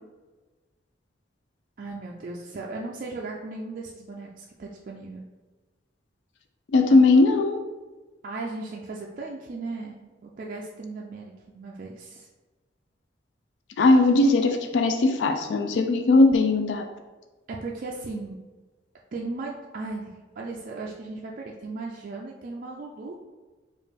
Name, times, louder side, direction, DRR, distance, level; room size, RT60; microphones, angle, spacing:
voice 1, 1.8-5.2 6.9-7.0 8.2-12.3 17.5-18.4 19.1-23.1, right 3 dB, 50° right, -2 dB, 0.4 m, -36 dB
voice 2, 6.7-7.6 13.8-16.9, left 2 dB, 70° left, 6 dB, 0.4 m, -19 dB
5.0 x 2.4 x 3.3 m, 1.3 s
head